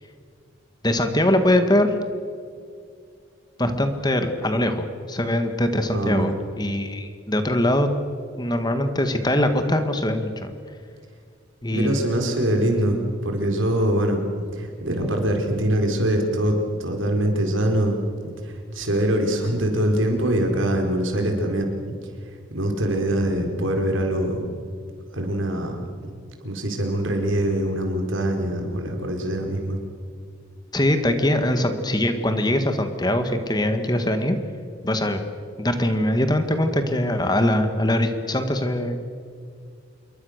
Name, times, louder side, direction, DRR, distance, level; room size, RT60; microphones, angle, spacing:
voice 1, 0.8-1.9 3.6-7.9 8.4-10.5 11.6-12.0 30.7-34.4 34.8-35.2 35.6-39.1, left 1 dB, 20° left, 7 dB, 1.7 m, -22 dB
voice 2, 5.9-6.3 11.7-14.2 14.5-18.0 18.4-21.9 22.5-24.5 25.1-25.8 26.4-29.8, right 1 dB, 75° right, 3 dB, 4.5 m, -23 dB
27.5 x 23.0 x 6.6 m, 2.2 s
head